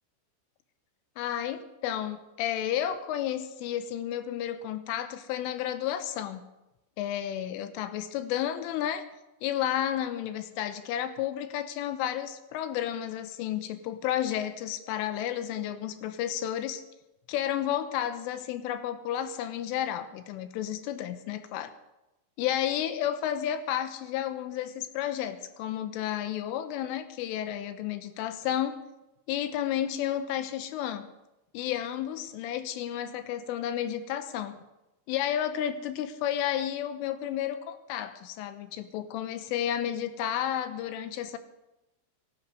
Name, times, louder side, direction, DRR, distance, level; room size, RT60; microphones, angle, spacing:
voice 1, 1.2-6.4 7.0-9.0 9.4-16.8 17.3-21.7 22.4-28.8 29.3-31.1 31.5-34.6 35.1-41.4, left 11 dB, 85° left, 10 dB, 3.5 m, -32 dB
17.0 x 11.5 x 6.6 m, 0.96 s
omnidirectional pair, 5.8 m